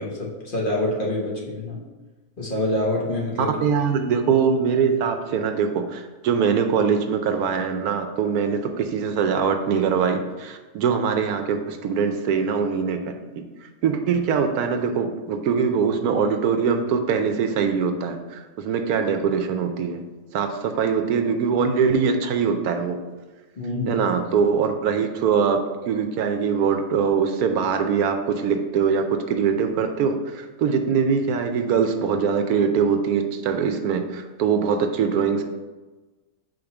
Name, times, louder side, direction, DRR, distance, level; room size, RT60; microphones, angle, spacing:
voice 1, 0.0-1.8 2.4-3.5 23.6-24.0, left 1 dB, 35° left, -4 dB, 1.2 m, -26 dB
voice 2, 3.4-13.1 13.8-20.0 20.3-23.0 23.9-25.6 25.9-35.4, right 6 dB, 75° right, 6 dB, 1.1 m, -22 dB
5.1 x 3.9 x 5.8 m, 1.2 s
omnidirectional pair, 1.6 m